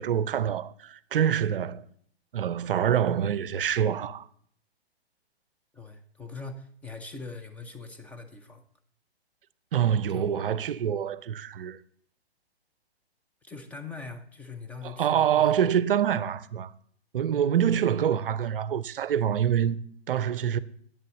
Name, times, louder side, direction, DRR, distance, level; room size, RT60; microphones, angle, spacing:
voice 1, 0.0-1.8 2.3-4.3 9.7-11.8 14.8-16.7 17.1-20.6, right 9 dB, 60° right, 0.6 m, -26 dB
voice 2, 5.7-8.6 10.1-10.3 13.4-15.5 17.5-17.8, left 4 dB, 5° left, 0.6 m, -42 dB
8.8 x 6.6 x 7.0 m
figure-of-eight pair, 125°, 32 cm